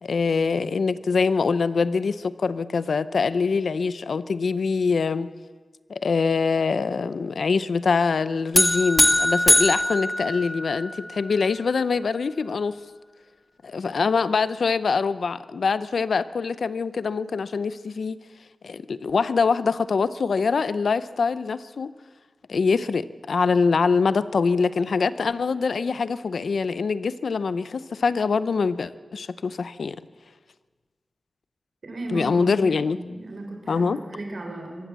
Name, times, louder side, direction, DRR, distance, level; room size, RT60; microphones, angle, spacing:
voice 1, 0.0-5.3 5.9-12.8 13.6-18.2 18.6-21.9 22.5-30.0 32.1-33.0 33.7-34.0, left 5 dB, 85° left, 14 dB, 0.6 m, -24 dB
sound 1, 8.5-11.0, left 1 dB, 20° left, 1.8 m, -21 dB
voice 2, 31.8-32.6 32.9-34.9, right 2 dB, 70° right, 3 dB, 4.3 m, -35 dB
25.0 x 15.0 x 7.6 m, 1.4 s
wide cardioid pair, 90°, 0 cm